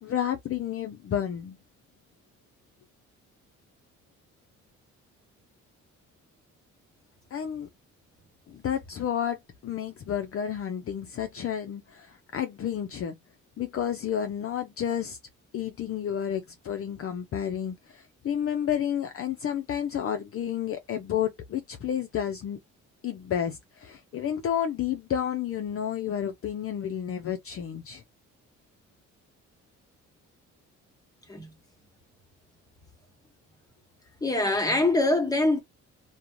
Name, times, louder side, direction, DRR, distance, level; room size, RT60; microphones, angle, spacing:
voice 1, 0.0-1.6 7.3-7.7 8.5-9.4 9.6-13.1 13.6-15.2 15.5-22.6 23.0-28.0, left 9 dB, 50° left, 0.5 m, -31 dB
voice 2, 34.2-35.6, left 2 dB, 10° left, 1.1 m, -24 dB
2.4 x 2.2 x 3.0 m
cardioid pair, 90°, 30 cm